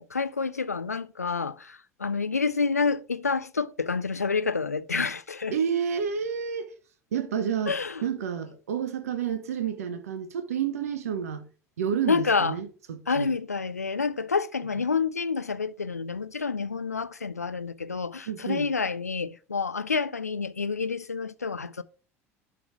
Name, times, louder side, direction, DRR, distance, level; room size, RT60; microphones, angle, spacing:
voice 1, 0.0-5.6 7.7-8.0 12.1-12.6 13.1-21.8, left 5 dB, 90° left, 0.4 m, -28 dB
voice 2, 5.5-6.7 7.1-7.8 8.0-11.5 11.8-13.3 18.3-18.7, right 7 dB, 75° right, 0.9 m, -30 dB
11.0 x 3.7 x 4.7 m
figure-of-eight pair, 70°, 8 cm